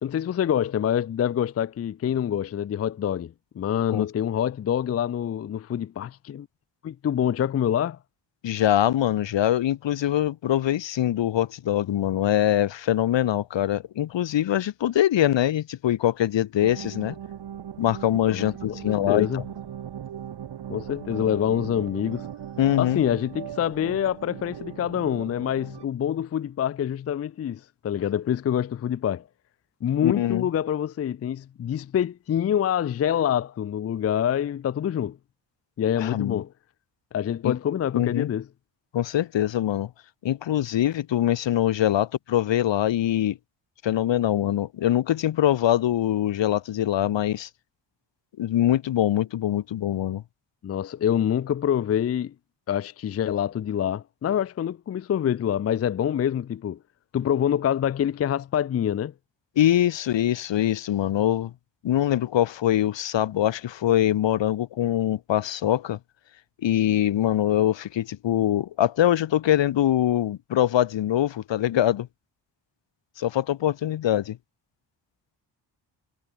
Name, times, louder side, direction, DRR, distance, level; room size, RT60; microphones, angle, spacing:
voice 1, 0.0-6.5 6.8-8.0 18.3-19.5 20.7-22.3 22.8-29.3 29.8-35.2 35.8-36.5 37.1-38.5 50.6-52.3 52.7-56.8 57.1-59.1, left 9 dB, 35° left, 0.5 m, -26 dB
voice 2, 8.4-17.2 17.8-19.3 22.6-23.0 30.0-30.5 36.0-36.4 37.4-37.5 37.9-38.3 38.9-39.9 40.2-43.4 43.8-47.5 48.4-50.2 59.6-61.5 61.8-66.0 66.6-72.1 73.2-74.4, left 12 dB, 85° left, 2.2 m, -23 dB
sound 1, 16.6-25.9, right 9 dB, 65° right, 7.5 m, -39 dB
wide cardioid pair, 165°, 43 cm